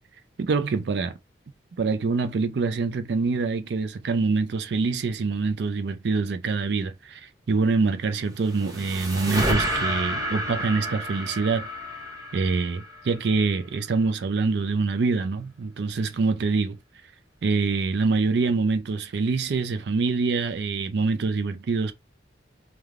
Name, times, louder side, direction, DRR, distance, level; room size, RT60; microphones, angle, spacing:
voice 1, 0.4-1.1 1.8-11.7 12.3-16.8 17.4-21.9, right 4 dB, 65° right, 0.4 m, -25 dB
sound 1, 8.1-13.5, equal, 20° right, 0.8 m, -30 dB
3.2 x 2.2 x 2.4 m
head